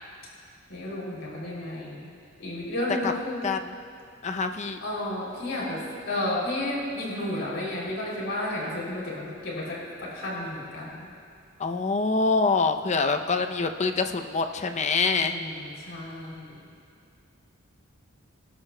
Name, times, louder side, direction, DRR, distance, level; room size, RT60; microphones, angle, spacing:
voice 1, 0.7-2.1 2.4-3.5 4.8-11.1 15.2-16.5, left 1 dB, 70° left, -4 dB, 3.1 m, -32 dB
voice 2, 4.2-4.8 11.6-15.3, left 4 dB, 35° left, 6 dB, 0.5 m, -25 dB
23.0 x 12.0 x 2.2 m, 2.4 s
head